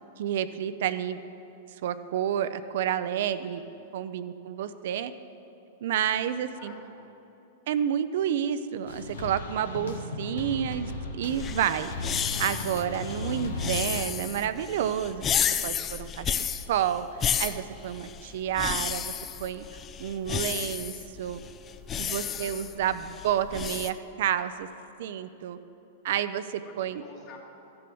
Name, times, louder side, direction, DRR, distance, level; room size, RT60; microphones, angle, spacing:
voice 1, 0.2-1.2 1.8-3.6 3.9-5.1 5.8-6.8 7.7-11.9 12.2-15.2 15.6-16.4 16.7-17.0 17.4-19.1 19.4-19.7 20.0-21.4 22.0-24.7 25.0-25.6 26.0-27.0, right 9 dB, 65° right, 12 dB, 0.5 m, -30 dB
voice 2, 3.4-3.9 4.6-4.7 6.0-7.1 21.9-22.6 26.6-27.4, left 5 dB, 50° left, -2 dB, 2.7 m, -51 dB
sound 1, 8.9-14.0, left 3 dB, 80° left, 1.4 m, -36 dB
sound 2, 11.3-23.9, left 8 dB, 25° left, 0.5 m, -32 dB
13.5 x 6.9 x 6.9 m, 2.9 s
hypercardioid pair, 110°, 0 cm